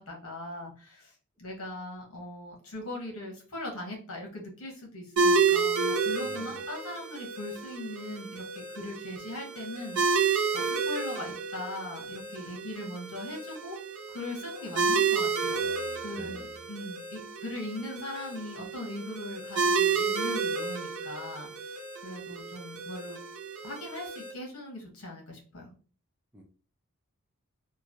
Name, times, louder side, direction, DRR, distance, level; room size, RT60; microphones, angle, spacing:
voice 1, 0.0-13.8 14.1-23.2 23.6-25.7, left 1 dB, 65° left, 0 dB, 1.0 m, -40 dB
sound 1, 5.2-24.3, right 5 dB, 70° right, 0.7 m, -30 dB
voice 2, 6.3-6.6 15.6-16.7 26.3-26.4, right 1 dB, 5° right, 0 dB, 0.4 m, -48 dB
3.0 x 2.3 x 2.6 m, 0.39 s
head